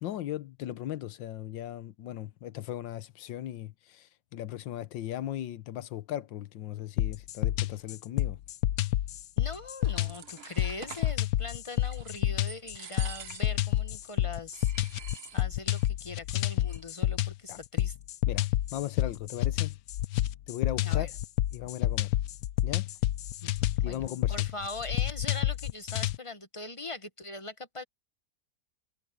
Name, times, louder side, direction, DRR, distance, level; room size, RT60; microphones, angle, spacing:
voice 1, 0.0-8.4 17.5-17.6 18.3-19.8 20.5-21.1 21.5-22.1 22.6-22.9 23.8-24.3, left 12 dB, 90° left, 1.6 m, -37 dB
sound 1, 7.0-26.2, left 14 dB, 70° left, 0.9 m, -29 dB
voice 2, 9.4-14.7 15.3-18.0 20.8-21.1 23.4-24.0 24.3-27.8, left 2 dB, 30° left, 0.6 m, -41 dB
sound 2, 9.5-11.2 11.7-12.2 12.5-13.7 14.0-14.1 14.5-15.9 16.1-16.2 16.5-17.0, right 7 dB, 45° right, 0.9 m, -47 dB
omnidirectional pair, 2.0 m